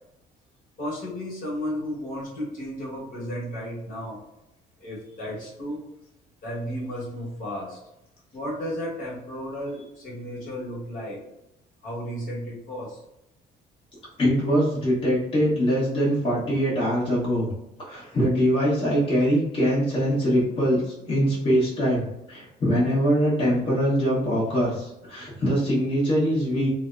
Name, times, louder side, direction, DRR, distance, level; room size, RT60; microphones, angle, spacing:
voice 1, 0.8-4.2 4.8-5.8 6.4-7.8 8.3-11.2 11.8-13.0, equal, 55° left, -6 dB, 1.2 m, -33 dB
voice 2, 14.2-17.5 17.9-26.7, equal, 30° left, -8 dB, 1.0 m, -23 dB
2.7 x 2.1 x 2.4 m, 0.89 s
cardioid pair, 110°, 17 cm